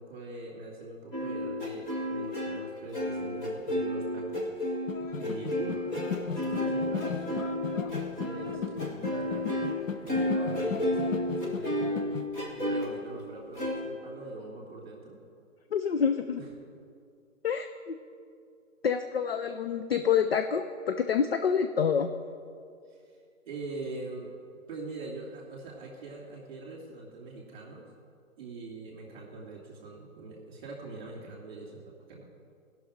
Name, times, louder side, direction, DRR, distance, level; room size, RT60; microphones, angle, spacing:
voice 1, 0.0-4.7 5.2-5.9 6.3-9.6 10.0-15.2 16.3-16.5 22.9-23.0 23.4-24.3 24.7-27.9 28.4-32.2, right 3 dB, 30° right, -4 dB, 2.6 m, -43 dB
sound 1, 1.1-9.8 10.1-12.9 13.5-13.7, left 1 dB, 15° left, 0.9 m, -31 dB
sound 2, 4.9-12.3, left 6 dB, 70° left, 0.8 m, -37 dB
voice 2, 15.7-16.4 17.4-18.0 18.8-22.1, left 7 dB, 50° left, 8 dB, 0.4 m, -27 dB
16.5 x 6.0 x 5.1 m, 2.3 s
hypercardioid pair, 155°, 41 cm